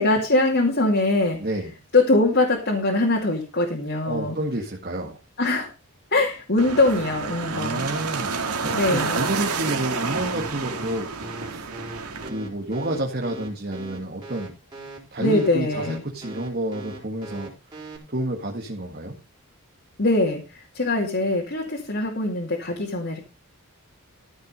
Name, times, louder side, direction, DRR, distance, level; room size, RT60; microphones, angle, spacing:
voice 1, 0.0-1.4 1.9-4.4 5.4-5.7 6.1-7.8 8.7-9.2 15.2-16.0 20.0-23.2, left 2 dB, 50° left, 0 dB, 2.4 m, -22 dB
voice 2, 1.4-1.7 4.0-5.2 7.5-11.1 11.5-11.7 12.2-14.5 15.1-17.5 18.1-19.1, right 1 dB, 45° right, 1 dB, 1.9 m, -29 dB
sound 1, 6.6-12.3, right 4 dB, 90° right, 2.3 m, -29 dB
sound 2, 10.2-18.0, right 2 dB, 20° right, 4.4 m, -39 dB
14.5 x 6.4 x 5.3 m, 0.29 s
head